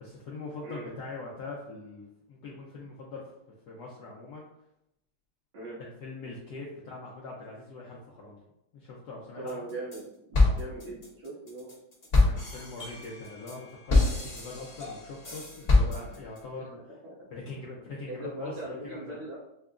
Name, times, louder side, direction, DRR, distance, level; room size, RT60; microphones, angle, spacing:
voice 1, 0.0-3.3 3.7-4.5 5.8-8.5 8.7-9.7 10.3-10.6 12.1-16.9 17.3-19.2, left 3 dB, 75° left, -4 dB, 0.9 m, -42 dB
voice 2, 9.3-11.7 17.0-17.3 18.1-19.4, right 2 dB, 75° right, -9 dB, 2.6 m, -40 dB
sound 1, 9.5-10.0 10.3-16.4, left 2 dB, 40° left, 0.9 m, -26 dB
5.7 x 2.2 x 2.4 m, 0.81 s
omnidirectional pair, 2.3 m